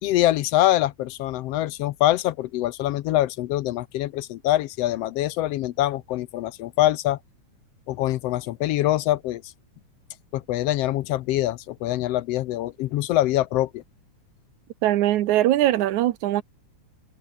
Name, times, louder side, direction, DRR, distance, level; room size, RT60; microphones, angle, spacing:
voice 1, 0.0-7.2 7.9-9.4 10.3-13.8, left 14 dB, 75° left, 1.5 m, -24 dB
voice 2, 14.8-16.4, right 14 dB, 85° right, 2.4 m, -21 dB
omnidirectional pair, 3.3 m